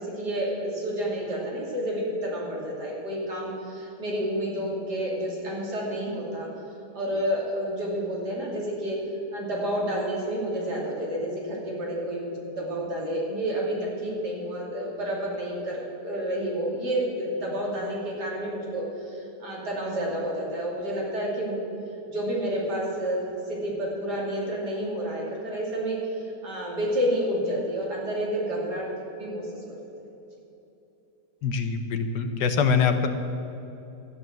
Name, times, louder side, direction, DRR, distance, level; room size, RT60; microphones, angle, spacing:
voice 1, 0.0-6.5 6.9-9.0 9.3-21.6 22.1-23.2 23.5-28.9 29.1-29.6, equal, 80° right, -4 dB, 3.5 m, -30 dB
voice 2, 31.4-33.1, left 6 dB, 90° left, 7 dB, 1.6 m, -24 dB
13.0 x 9.7 x 7.6 m, 2.9 s
omnidirectional pair, 1.7 m